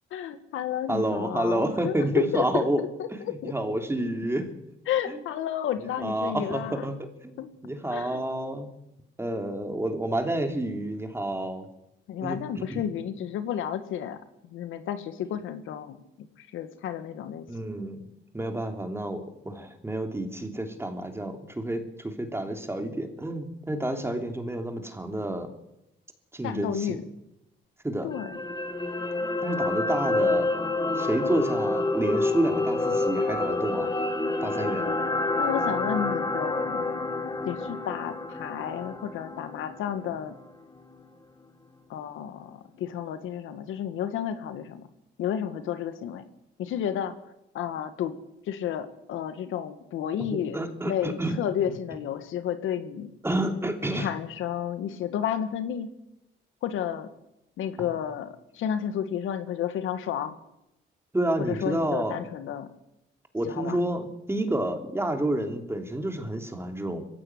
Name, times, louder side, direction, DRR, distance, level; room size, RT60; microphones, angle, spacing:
voice 1, 0.1-2.9 3.3-3.5 4.9-6.8 7.4-7.5 7.9-8.2 12.1-14.2 14.5-16.0 16.4-17.4 26.4-27.0 28.0-28.4 34.8-35.0 35.4-36.9 37.5-40.3 41.9-44.9 45.2-46.2 46.6-47.1 47.5-48.2 48.5-50.6 50.8-53.1 53.9-55.9 56.6-57.1 57.6-60.3 61.5-62.7 63.5-63.8, left 9 dB, 85° left, 10 dB, 1.7 m, -31 dB
voice 2, 0.9-2.8 3.1-4.5 5.1-5.2 6.0-7.4 7.6-8.7 9.2-11.7 12.2-12.9 17.5-18.0 18.3-25.5 26.3-27.0 27.8-28.1 29.4-30.5 30.9-33.9 34.4-34.9 50.2-50.3 50.5-51.4 51.7-51.8 53.2-54.1 57.8-57.9 61.1-62.2 63.3-67.1, right 1 dB, 10° right, 5 dB, 3.2 m, -29 dB
sound 1, 28.1-40.4 40.8-40.9, left 2 dB, 20° left, 1.8 m, -28 dB
21.0 x 16.0 x 9.6 m, 0.89 s
cardioid pair, 90°, 20 cm